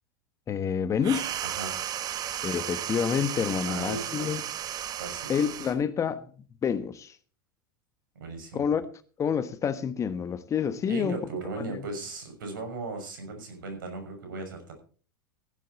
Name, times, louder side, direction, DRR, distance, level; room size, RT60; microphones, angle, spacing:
voice 1, 0.5-1.3 2.4-4.4 5.3-6.3 6.6-7.1 8.5-8.8 9.2-11.2 11.7-11.8, left 7 dB, 30° left, 1.2 m, -28 dB
sound 1, 1.0-5.8, right 10 dB, 35° right, 1.2 m, -34 dB
voice 2, 1.4-2.0 3.6-4.5 5.0-5.3 8.2-8.6 10.9-14.7, right 3 dB, 70° right, 6.2 m, -37 dB
15.5 x 11.0 x 4.2 m
hypercardioid pair, 90°, 11 cm